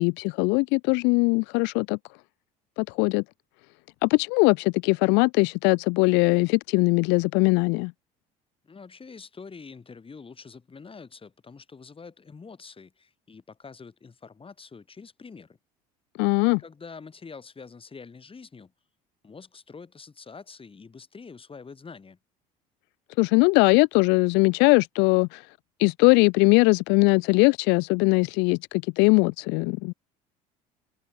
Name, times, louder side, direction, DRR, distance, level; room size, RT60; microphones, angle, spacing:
voice 1, 0.0-2.0 2.8-3.2 4.0-7.9 16.2-16.6 23.2-25.5 25.8-29.9, left 31 dB, 65° left, 0.4 m, -21 dB
voice 2, 8.6-15.6 16.6-18.7 19.2-22.2, left 5 dB, 25° left, 8.0 m, -45 dB
hypercardioid pair, 70°, 20 cm